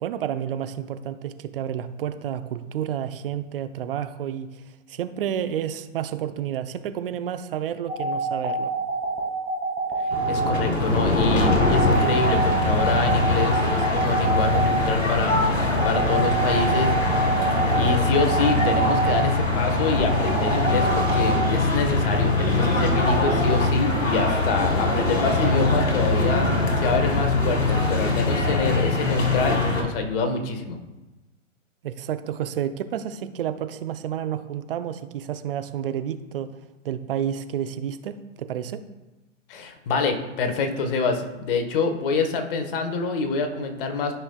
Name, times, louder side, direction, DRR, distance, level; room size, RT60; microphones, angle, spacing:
voice 1, 0.0-4.6 4.9-8.7 31.8-36.5 36.8-38.8, right 9 dB, 45° right, 11 dB, 0.6 m, -30 dB
sound 1, 7.9-21.3, right 3 dB, 10° right, 1.9 m, -27 dB
sound 2, 10.1-29.8, left 2 dB, 75° left, 2.0 m, -22 dB
voice 2, 10.3-15.5 15.8-16.9 17.7-26.5 26.8-30.8 39.5-44.1, left 4 dB, 45° left, 6 dB, 1.3 m, -26 dB
13.0 x 5.6 x 2.3 m, 1.1 s
figure-of-eight pair, 110°, 39 cm